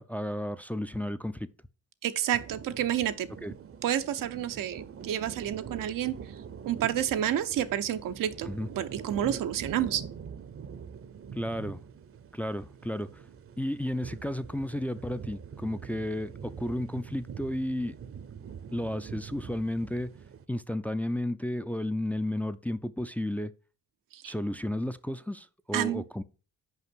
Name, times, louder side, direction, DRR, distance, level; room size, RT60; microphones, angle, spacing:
voice 1, 0.0-1.5 3.4-3.5 8.5-8.7 11.4-11.8 12.3-13.2 13.6-17.9 18.7-20.1 20.5-23.5 24.2-26.2, left 1 dB, 5° left, 0.4 m, -33 dB
voice 2, 2.0-3.3 3.8-6.1 6.6-8.5 8.7-10.0 24.1-24.3 25.7-26.0, right 11 dB, 85° right, 0.7 m, -29 dB
sound 1, 2.3-20.4, right 7 dB, 45° right, 0.7 m, -44 dB
5.7 x 5.0 x 6.1 m
cardioid pair, 70°, 32 cm